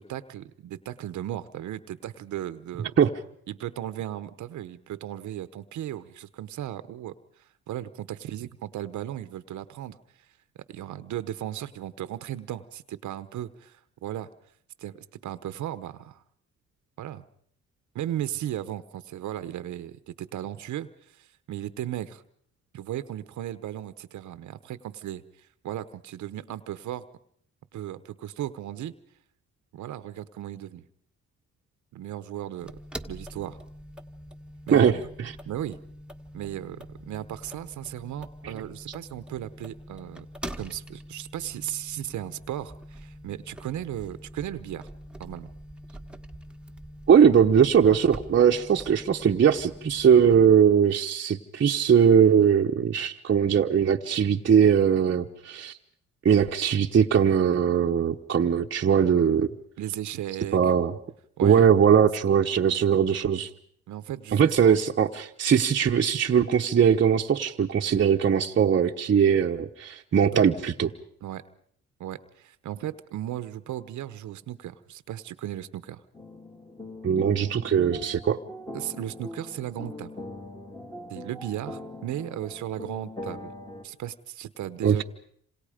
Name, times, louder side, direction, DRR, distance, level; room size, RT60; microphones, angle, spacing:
voice 1, 0.0-2.9 3.5-10.3 10.7-14.3 14.8-16.2 17.0-17.2 17.9-22.2 22.7-27.0 27.7-28.9 29.7-30.8 31.9-32.7 33.1-33.6 34.7-35.0 35.4-35.8 36.3-40.3 40.6-44.9 45.2-45.5 47.9-48.0 59.8-60.6 61.4-61.6 63.9-64.8 70.1-70.5 71.2-71.4 72.0-76.0 78.7-80.1 81.1-83.5 83.8-85.0, right 12 dB, 70° right, 13 dB, 1.0 m, -36 dB
sound 1, 32.6-50.6, equal, 5° right, 1.6 m, -44 dB
voice 2, 47.1-55.8 56.2-59.5 60.5-60.9 61.4-63.5 64.3-70.9 77.0-78.4 84.8-85.0, right 7 dB, 40° right, 1 dB, 1.0 m, -20 dB
sound 2, 76.1-83.8, left 1 dB, 15° left, 2.5 m, -41 dB
27.5 x 26.5 x 5.1 m, 0.66 s
cardioid pair, 90°, 30 cm